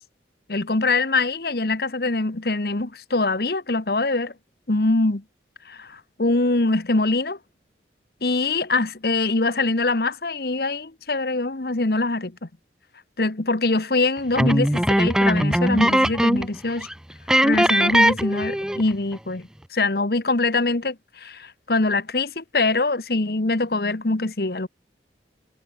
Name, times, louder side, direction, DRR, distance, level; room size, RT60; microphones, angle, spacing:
voice 1, 0.5-4.3 4.7-5.2 5.7-7.4 8.2-12.4 13.2-16.9 17.4-24.7, left 2 dB, 60° left, 1.3 m, -23 dB
sound 1, 14.3-16.6 16.8-16.9 17.3-18.9, equal, 5° right, 0.5 m, -20 dB
head